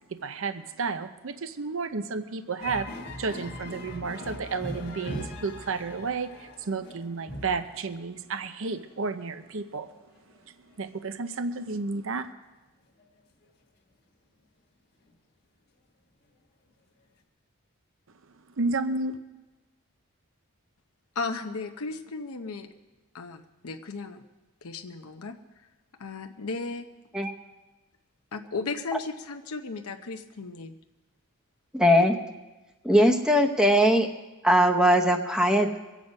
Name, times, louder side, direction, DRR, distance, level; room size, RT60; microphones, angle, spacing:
voice 1, 0.1-2.9 3.2-9.9 10.8-12.3 18.6-19.2, right 4 dB, 60° right, 11 dB, 0.6 m, -32 dB
sound 1, 2.6-7.9 8.6-8.7 10.1-10.2 10.4-10.5 11.7-11.8 13.0-13.1 15.1-15.2, left 1 dB, 45° left, 1.6 m, -40 dB
voice 2, 21.1-22.7 23.1-24.2 24.6-25.4 26.0-26.9 28.3-30.7, left 4 dB, 80° left, 5 dB, 0.8 m, -35 dB
voice 3, 31.7-32.1 32.8-34.1 34.4-35.8, equal, 5° right, 3 dB, 0.9 m, -20 dB
23.5 x 8.4 x 5.4 m, 1.1 s
head